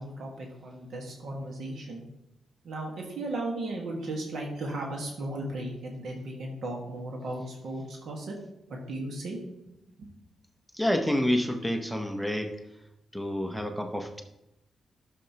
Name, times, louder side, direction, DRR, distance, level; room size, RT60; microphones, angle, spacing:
voice 1, 0.0-2.0 2.6-8.3 8.7-9.4 10.0-10.1, right 1 dB, 55° right, 0 dB, 1.4 m, -36 dB
voice 2, 10.7-12.6 13.1-14.2, equal, ahead, 5 dB, 0.6 m, -28 dB
12.5 x 6.5 x 2.8 m, 0.87 s
wide cardioid pair, 180°, 0 cm